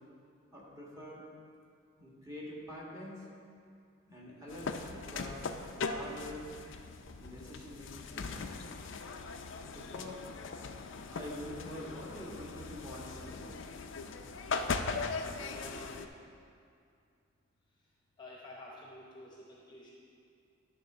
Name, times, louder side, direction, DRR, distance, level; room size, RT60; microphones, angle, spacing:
voice 1, 0.5-1.2 2.0-3.2 4.1-6.5 7.2-8.5 9.6-10.3 11.1-13.5, left 1 dB, 15° right, -6 dB, 1.5 m, -46 dB
sound 1, 4.5-16.1, left 4 dB, 65° left, 0.4 m, -40 dB
voice 2, 15.4-16.1 18.2-19.9, left 1 dB, 20° left, -4 dB, 0.9 m, -49 dB
11.0 x 3.7 x 6.0 m, 2.3 s
head